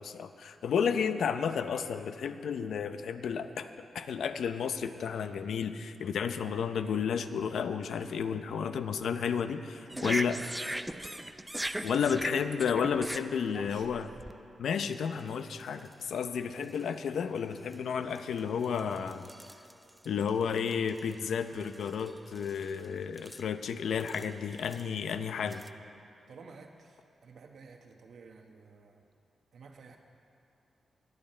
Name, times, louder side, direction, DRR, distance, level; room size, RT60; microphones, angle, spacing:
voice 1, 0.0-3.7 3.9-10.4 11.8-14.1 14.6-19.3 20.0-25.6, left 7 dB, 80° left, 9 dB, 0.6 m, -32 dB
voice 2, 9.8-11.3 11.9-12.4 13.4-13.9 25.0-25.1 26.3-29.1 29.5-30.0, right 4 dB, 65° right, 3 dB, 1.2 m, -51 dB
sound 1, 9.9-14.3 15.0-15.2 15.5-15.9 16.6-16.8 17.7-17.8 18.2-21.1 21.4-22.9 23.2-23.4 24.0-24.8 25.5-25.7, right 1 dB, 5° right, 0.4 m, -39 dB
21.5 x 9.6 x 4.4 m, 2.6 s
wide cardioid pair, 160°, 0 cm